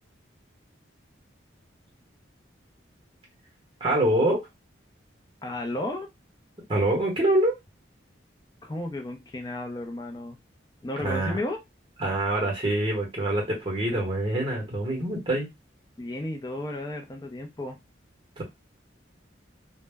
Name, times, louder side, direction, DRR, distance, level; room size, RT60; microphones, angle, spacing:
voice 1, 3.8-4.4 6.7-7.5 11.0-11.4 12.0-15.5 18.4-18.5, right 1 dB, 25° right, -1 dB, 0.9 m, -25 dB
voice 2, 5.4-6.1 8.6-10.4 10.8-11.6 16.0-17.8, left 1 dB, 20° left, 3 dB, 0.4 m, -33 dB
2.1 x 2.0 x 3.3 m, 0.21 s
head